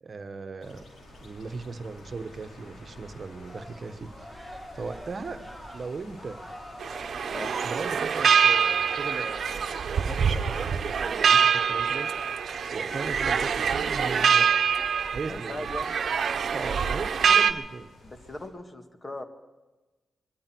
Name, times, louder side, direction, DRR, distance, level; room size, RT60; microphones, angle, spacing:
voice 1, 0.0-0.8 1.2-4.3 4.7-5.4 5.7-6.4 7.6-12.1 12.7-14.5 15.1-15.7 16.3-17.9, right 4 dB, 50° right, 7 dB, 1.2 m, -38 dB
sound 1, 0.6-18.5, left 1 dB, 70° left, 4.7 m, -50 dB
sound 2, 3.4-16.9, equal, 5° left, 1.9 m, -47 dB
sound 3, 6.8-17.5, right 7 dB, 70° right, 1.0 m, -25 dB
voice 2, 15.3-16.0 18.0-19.2, left 1 dB, 30° left, 6 dB, 1.9 m, -38 dB
23.0 x 13.5 x 4.6 m, 1.2 s
cardioid pair, 65°, 0 cm